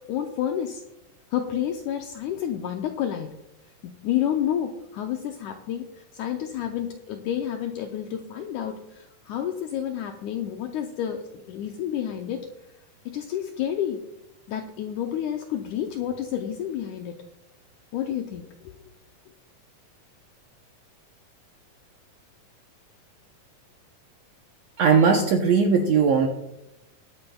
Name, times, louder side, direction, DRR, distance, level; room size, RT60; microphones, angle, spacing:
voice 1, 0.1-0.8 1.3-3.4 3.8-12.5 13.1-14.0 14.5-17.2 17.9-18.7, left 10 dB, 90° left, 4 dB, 1.7 m, -30 dB
voice 2, 24.8-26.3, right 5 dB, 80° right, 2 dB, 1.5 m, -19 dB
21.5 x 9.0 x 2.3 m, 0.89 s
omnidirectional pair, 4.1 m